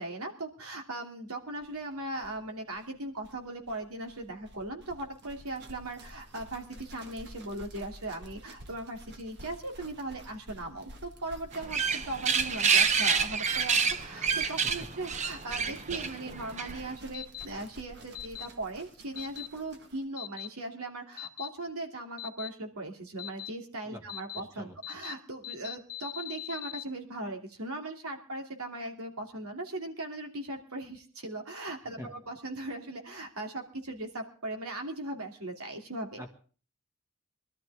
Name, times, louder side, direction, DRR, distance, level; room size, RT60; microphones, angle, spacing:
voice 1, 0.0-36.2, right 2 dB, 85° right, 3 dB, 3.0 m, -39 dB
sound 1, 1.6-1.7 1.9-2.0 2.2-20.0, equal, 50° right, 1.9 m, -50 dB
sound 2, 11.5-16.9, right 6 dB, 30° right, 0.8 m, -28 dB
voice 2, 15.6-16.4 23.8-24.0 24.3-24.7 31.8-32.1 36.2-36.3, equal, 15° right, 4 dB, 1.8 m, -46 dB
sound 3, 17.1-17.5 18.2-18.5 19.2-19.5 20.2-20.5 21.2-21.5 22.2-22.5 23.2-23.5 24.1-24.4 24.8-25.1 25.4-26.8, left 13 dB, 40° left, 0.9 m, -40 dB
22.5 x 12.5 x 3.6 m, 0.39 s
head